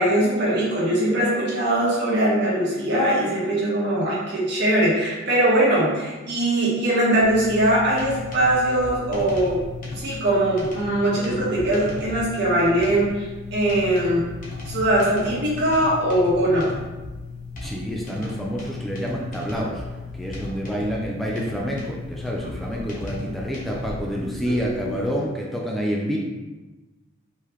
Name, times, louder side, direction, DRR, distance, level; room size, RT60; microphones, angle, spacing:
voice 1, 0.0-14.3 14.7-16.7 24.4-24.5, right 1 dB, 55° right, -6 dB, 1.5 m, -21 dB
sound 1, 7.2-25.1, left 3 dB, 45° left, 1.0 m, -36 dB
voice 2, 17.6-19.8 20.1-26.2, equal, ahead, -3 dB, 0.4 m, -28 dB
4.6 x 3.4 x 3.0 m, 1.2 s
head